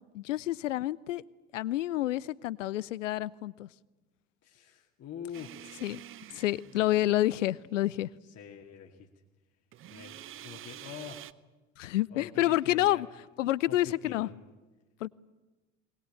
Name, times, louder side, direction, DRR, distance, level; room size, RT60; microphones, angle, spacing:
voice 1, 0.1-1.2 1.5-3.7 5.8-6.0 6.3-8.1 11.8-13.1 13.4-14.3 15.0-15.1, left 14 dB, 70° left, 22 dB, 0.7 m, -29 dB
voice 2, 4.4-5.8 6.8-7.0 8.3-9.1 9.9-11.3 12.1-13.0 13.7-14.4, left 8 dB, 40° left, 2 dB, 2.1 m, -45 dB
sound 1, 5.3-7.4 9.7-11.3, right 12 dB, 30° right, 0.8 m, -48 dB
21.5 x 20.0 x 8.8 m, 1.1 s
figure-of-eight pair, 65°, 39 cm